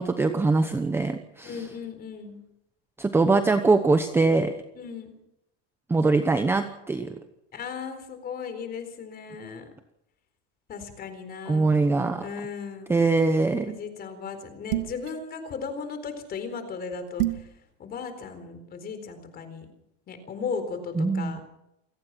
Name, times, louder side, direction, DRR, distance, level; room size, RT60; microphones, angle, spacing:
voice 1, 0.0-1.6 3.0-4.5 5.9-7.2 11.5-12.3 12.9-13.8 21.0-21.4, right 3 dB, 5° right, 8 dB, 0.9 m, -22 dB
voice 2, 1.4-2.4 4.8-5.2 7.5-9.7 10.7-11.8 12.2-12.9 13.7-17.5 17.8-19.7 20.1-21.4, left 5 dB, 25° left, 9 dB, 4.1 m, -36 dB
sound 1, 14.7-15.1 17.2-17.5, right 17 dB, 65° right, 2.2 m, -27 dB
28.0 x 17.0 x 5.9 m, 0.83 s
supercardioid pair, 155°, 36 cm